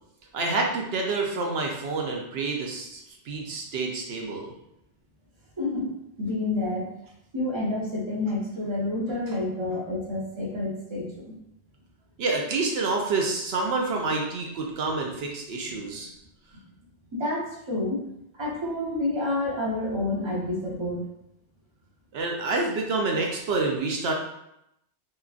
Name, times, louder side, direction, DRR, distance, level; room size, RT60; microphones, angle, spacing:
voice 1, 0.3-4.5 12.2-16.1 22.1-24.1, right 3 dB, 70° right, 1 dB, 0.8 m, -28 dB
voice 2, 5.6-5.9 6.2-6.9 7.3-11.4 15.7-15.8 17.1-18.0 18.4-21.0, left 2 dB, 30° right, -4 dB, 0.6 m, -29 dB
2.9 x 2.4 x 2.4 m, 0.80 s
omnidirectional pair, 1.2 m